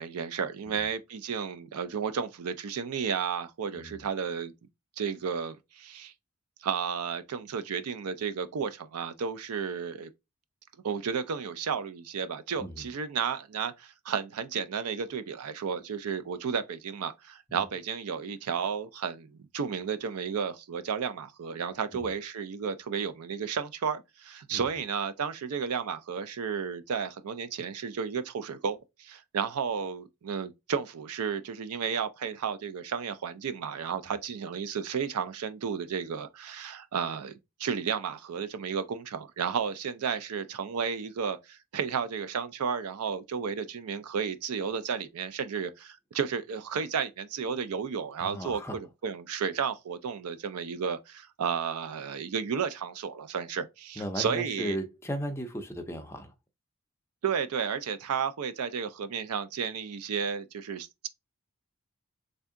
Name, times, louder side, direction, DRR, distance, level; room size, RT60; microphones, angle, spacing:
voice 1, 0.0-4.5 5.0-6.1 6.6-10.1 10.8-37.3 37.6-54.8 57.2-61.1, right 6 dB, 90° right, 0.5 m, -33 dB
voice 2, 3.8-4.1 12.6-12.8 17.5-17.7 21.9-22.1 24.5-24.6 34.1-34.2 48.2-48.8 54.0-56.3, equal, 10° left, 0.4 m, -36 dB
3.4 x 2.6 x 3.6 m
head